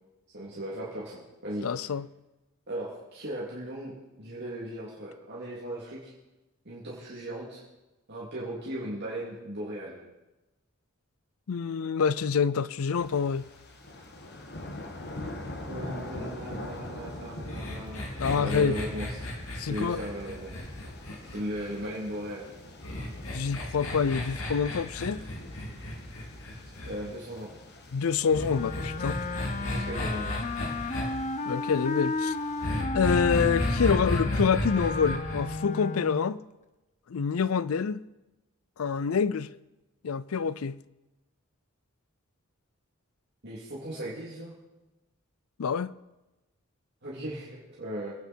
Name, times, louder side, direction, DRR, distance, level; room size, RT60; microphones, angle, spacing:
voice 1, 0.3-1.6 2.7-6.1 6.6-7.6 8.1-10.0 15.6-19.3 19.7-20.7 21.3-22.4 26.8-27.5 29.6-30.4 43.4-44.5 47.0-48.2, right 1 dB, 55° right, 3.0 m, -37 dB
voice 2, 1.6-2.1 11.5-13.4 18.2-18.8 19.6-20.0 23.3-25.2 27.9-29.2 31.4-32.4 32.9-36.4 37.1-38.0 38.8-39.5 40.0-40.8 45.6-45.9, left 6 dB, 85° left, 0.5 m, -26 dB
sound 1, 12.9-32.8, left 1 dB, 50° left, 1.5 m, -44 dB
sound 2, 17.5-21.9 22.8-27.0 28.3-31.0 32.6-35.4, left 1 dB, 70° left, 3.2 m, -33 dB
Wind instrument woodwind instrument, 28.5-36.3, left 3 dB, 35° left, 0.7 m, -34 dB
24.5 x 9.3 x 4.6 m
head